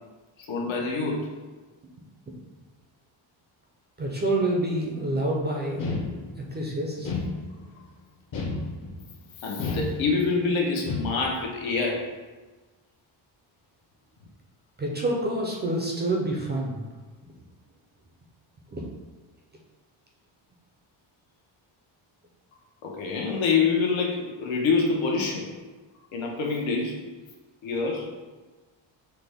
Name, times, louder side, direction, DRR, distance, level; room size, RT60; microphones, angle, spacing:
voice 1, 0.4-1.3 9.4-12.1 22.8-25.5 26.1-27.0 27.6-28.1, left 4 dB, 75° left, -1 dB, 0.9 m, -26 dB
voice 2, 4.0-6.0 6.4-7.1 14.8-16.8 18.7-18.8, right 1 dB, 25° right, -1 dB, 0.4 m, -27 dB
sound 1, 5.8-6.6 7.0-7.8 8.3-9.1 9.6-10.4 10.9-11.5, left 3 dB, 45° left, 0.8 m, -31 dB
5.8 x 2.1 x 3.4 m, 1.3 s
cardioid pair, 165°, 47 cm